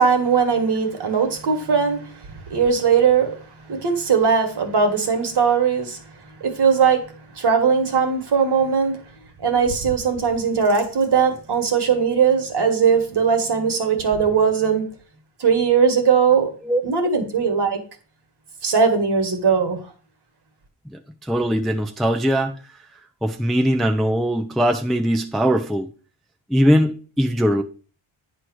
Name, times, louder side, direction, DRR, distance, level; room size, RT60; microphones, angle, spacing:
voice 1, 0.0-6.0 6.4-9.0 9.4-14.9 15.4-16.5 16.8-17.8 18.6-19.8, right 6 dB, 50° right, 1.6 m, -19 dB
voice 2, 20.9-22.5 23.2-25.9 26.5-27.6, equal, ahead, 0.5 m, -20 dB
9.5 x 3.2 x 6.1 m
wide cardioid pair, 145°, 50 cm